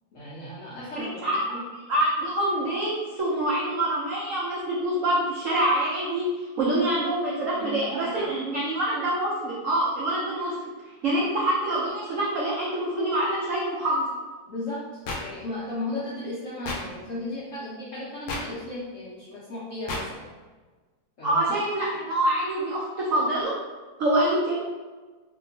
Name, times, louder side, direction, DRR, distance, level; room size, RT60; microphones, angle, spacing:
voice 1, 0.1-1.6 7.6-8.3 14.5-20.2 21.2-21.4, left 2 dB, 65° left, -8 dB, 0.8 m, -35 dB
voice 2, 0.9-1.6 1.9-10.5 11.0-14.1 21.2-23.5 24.0-24.6, right 1 dB, 85° right, -6 dB, 0.7 m, -26 dB
sound 1, 15.1-15.2 16.6-16.8 18.3-18.4 19.9-20.0, left 2 dB, 85° left, 1.3 m, -30 dB
2.9 x 2.6 x 2.7 m, 1.3 s
omnidirectional pair, 2.0 m